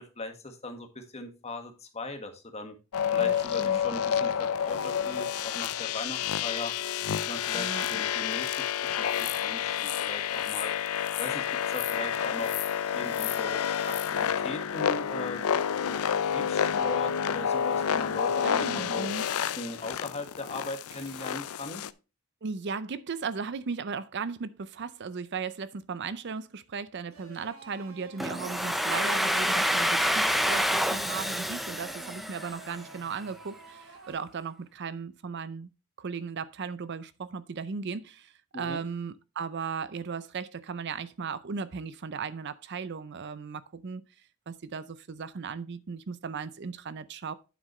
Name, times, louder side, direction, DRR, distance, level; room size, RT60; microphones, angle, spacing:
voice 1, 0.0-2.7 3.1-6.7 7.3-12.6 12.9-13.6 13.9-19.1 19.6-21.8 38.5-38.8, left 2 dB, 30° left, 1.6 m, -39 dB
sound 1, 2.9-21.9, left 8 dB, 80° left, 0.5 m, -29 dB
voice 2, 3.2-3.8 7.5-8.0 18.4-19.3 22.4-35.7 36.0-44.0 44.5-47.3, right 5 dB, 55° right, 0.5 m, -36 dB
sound 2, 27.1-34.1, right 2 dB, 75° right, 2.8 m, -52 dB
Domestic sounds home sounds, 28.2-33.0, equal, ahead, 0.6 m, -28 dB
9.4 x 7.5 x 3.2 m
head